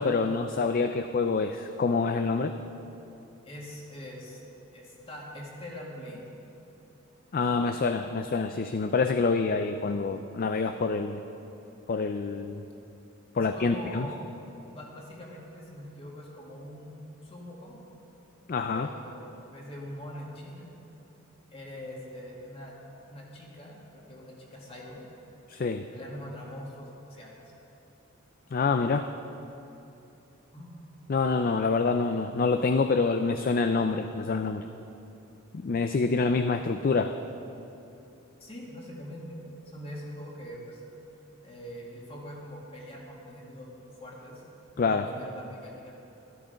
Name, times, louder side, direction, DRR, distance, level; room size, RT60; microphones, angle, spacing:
voice 1, 0.0-2.5 7.3-11.2 11.9-12.6 13.3-14.1 18.5-18.9 25.5-25.8 28.5-29.1 31.1-34.7 35.5-37.1 44.8-45.1, left 4 dB, 45° left, 8 dB, 0.4 m, -26 dB
voice 2, 3.4-4.4 4.7-6.2 13.3-14.2 14.7-17.8 18.7-20.7 21.5-22.7 23.1-25.0 25.8-27.3 30.5-30.7 38.4-39.4 39.7-40.8 41.4-43.7 44.0-44.4 44.8-46.0, equal, 30° left, -3 dB, 2.2 m, -43 dB
12.5 x 12.5 x 5.2 m, 2.9 s
head